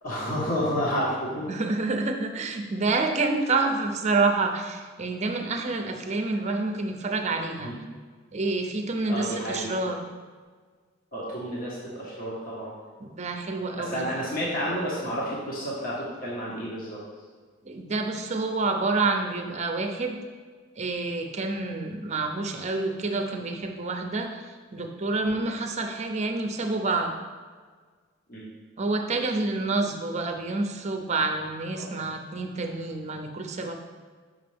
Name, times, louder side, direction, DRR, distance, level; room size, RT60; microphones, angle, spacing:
voice 1, 0.0-1.5 7.6-7.7 9.1-9.7 11.1-12.7 13.7-17.0 25.2-25.4 28.3-28.5 31.8-31.9, equal, 50° left, -6 dB, 1.4 m, -30 dB
voice 2, 1.5-7.7 8.3-10.0 13.0-14.1 17.6-20.2 20.8-27.2 28.8-33.8, right 3 dB, 35° right, 4 dB, 0.6 m, -28 dB
6.6 x 6.0 x 3.4 m, 1.6 s
head